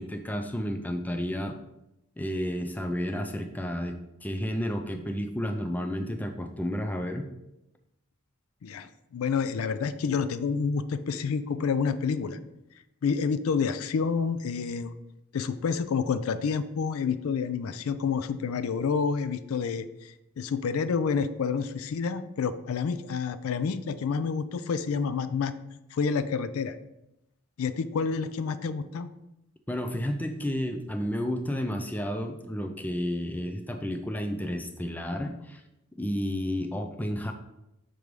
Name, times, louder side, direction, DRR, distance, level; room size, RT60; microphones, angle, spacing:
voice 1, 0.0-1.6 2.2-4.0 4.2-7.3 29.7-35.6 36.0-37.3, equal, 10° left, 5 dB, 0.4 m, -31 dB
voice 2, 8.6-12.4 13.0-14.9 15.3-25.5 25.9-26.8 27.6-29.1, left 5 dB, 75° left, 13 dB, 0.4 m, -29 dB
5.9 x 3.2 x 5.2 m, 0.90 s
head